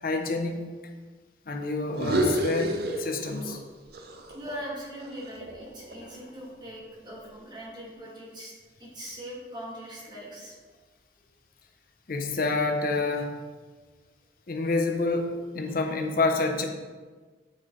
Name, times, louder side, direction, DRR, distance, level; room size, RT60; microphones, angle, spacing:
voice 1, 0.0-0.6 1.5-3.6 12.1-13.3 14.5-16.6, left 3 dB, 55° left, 4 dB, 0.6 m, -28 dB
sound 1, 1.9-3.6 3.9-6.2, right 1 dB, 60° right, 0.5 m, -30 dB
voice 2, 4.3-10.5 11.2-11.3, equal, 25° right, -4 dB, 1.4 m, -41 dB
8.4 x 3.2 x 3.6 m, 1.4 s
head